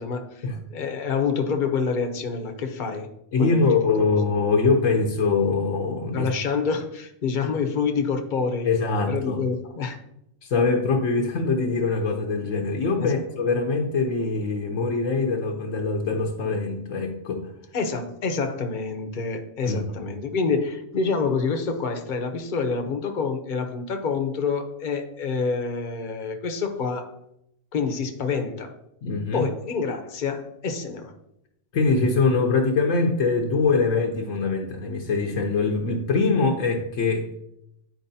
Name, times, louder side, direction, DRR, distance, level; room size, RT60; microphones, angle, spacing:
voice 1, 0.0-0.4 0.7-3.1 3.4-4.1 6.1-8.7 9.1-10.0 13.0-13.2 17.7-27.1 27.7-28.7 29.3-31.1, left 5 dB, 45° left, 6 dB, 0.9 m, -27 dB
voice 2, 3.3-6.3 8.6-9.4 10.4-17.5 19.7-19.8 29.0-29.5 31.7-37.3, left 4 dB, 80° left, 1 dB, 1.2 m, -23 dB
10.5 x 4.5 x 2.7 m, 0.80 s
omnidirectional pair, 1.3 m